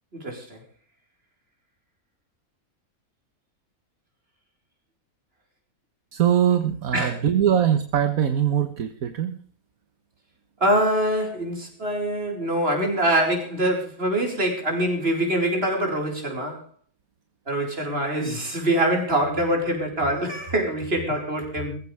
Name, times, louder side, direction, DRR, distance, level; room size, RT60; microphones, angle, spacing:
voice 1, 0.1-0.6 6.9-7.2 10.6-16.6 17.5-21.8, right 1 dB, 40° right, 2 dB, 5.2 m, -24 dB
voice 2, 6.1-9.4, right 9 dB, 70° right, 9 dB, 1.6 m, -22 dB
22.0 x 15.0 x 3.4 m, 0.39 s
omnidirectional pair, 1.5 m